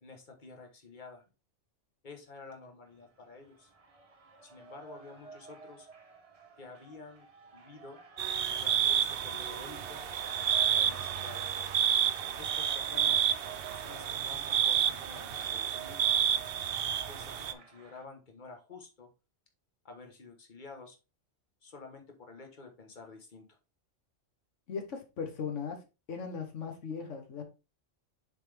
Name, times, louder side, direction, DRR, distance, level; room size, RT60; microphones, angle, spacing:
voice 1, 0.0-1.2 2.0-3.7 4.4-5.9 6.6-7.3 7.5-8.0 8.6-10.0 10.3-11.6 12.4-13.3 13.7-16.1 17.1-19.1 19.8-21.0 21.6-23.4, left 4 dB, 40° left, 3 dB, 1.4 m, -50 dB
Cheering, 2.9-18.0, right 3 dB, 30° right, 1.0 m, -52 dB
sound 1, 8.2-17.5, right 9 dB, 60° right, 0.7 m, -30 dB
voice 2, 24.7-25.8 26.1-27.4, left 6 dB, 85° left, 5 dB, 1.5 m, -38 dB
7.2 x 4.2 x 3.4 m, 0.29 s
omnidirectional pair, 1.2 m